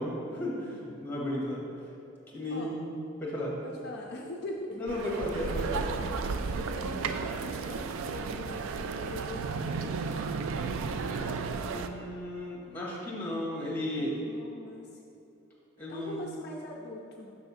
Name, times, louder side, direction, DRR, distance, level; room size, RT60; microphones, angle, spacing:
voice 1, 0.0-1.6 2.3-2.9 3.2-3.5 4.7-5.9 6.8-7.0 11.6-14.1 15.8-16.2, left 1 dB, 10° left, -5 dB, 1.4 m, -34 dB
voice 2, 3.6-4.8 6.7-10.2 14.0-15.0 15.9-17.4, left 1 dB, 50° left, -1 dB, 0.4 m, -42 dB
sound 1, 4.9-11.9, right 4 dB, 65° right, 0.3 m, -33 dB
6.2 x 3.4 x 5.6 m, 2.8 s
head